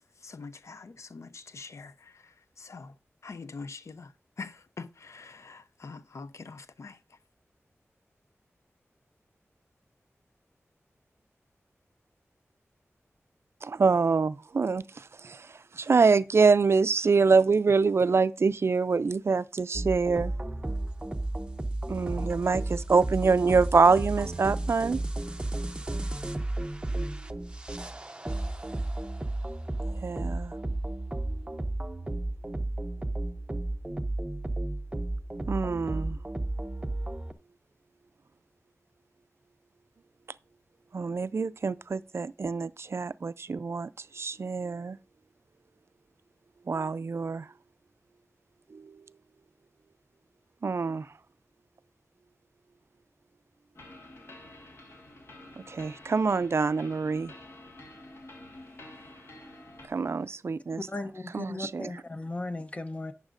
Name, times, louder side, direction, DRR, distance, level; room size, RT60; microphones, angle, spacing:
voice 1, 0.2-3.0 3.2-7.2, left 4 dB, 75° left, 0.5 m, -44 dB
voice 2, 13.6-15.5 15.8-20.3 21.9-25.0 29.9-30.5 35.5-36.2 40.9-43.9 44.1-45.0 46.7-47.5 48.7-48.9 50.6-51.1 55.7-57.3 59.9-60.8 61.3-61.9, right 4 dB, 60° right, 0.3 m, -25 dB
sound 1, 19.7-37.3, right 1 dB, 20° right, 0.6 m, -33 dB
sound 2, 53.7-59.9, left 1 dB, 60° left, 1.5 m, -49 dB
voice 3, 60.9-63.1, left 2 dB, 25° left, 0.7 m, -36 dB
11.5 x 8.0 x 2.5 m
wide cardioid pair, 75°, 5 cm